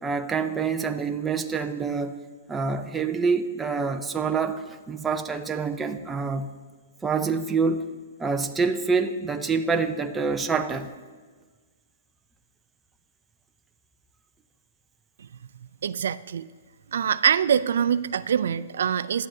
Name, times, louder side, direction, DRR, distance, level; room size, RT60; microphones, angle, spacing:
voice 1, 0.0-2.2 2.5-6.5 7.0-7.8 8.2-10.9, right 5 dB, 10° right, 5 dB, 0.5 m, -26 dB
voice 2, 15.8-16.5 16.9-19.3, right 8 dB, 75° right, 14 dB, 0.3 m, -24 dB
17.0 x 11.5 x 2.7 m, 1.4 s
hypercardioid pair, 165°, 0 cm